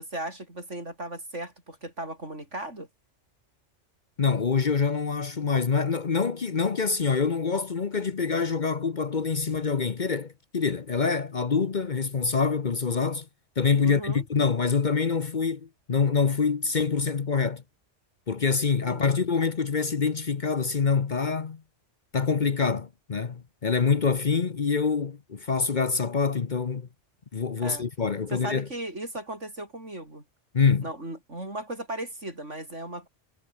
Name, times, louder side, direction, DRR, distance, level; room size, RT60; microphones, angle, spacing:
voice 1, 0.0-2.9 13.8-14.2 18.9-19.1 27.6-27.8 28.3-30.2 30.8-33.1, right 1 dB, 80° right, 8.2 m, -36 dB
voice 2, 4.2-13.3 13.6-17.6 18.3-21.6 22.1-26.9 27.3-28.7 30.5-30.9, left 5 dB, 45° left, 1.0 m, -25 dB
omnidirectional pair, 1.2 m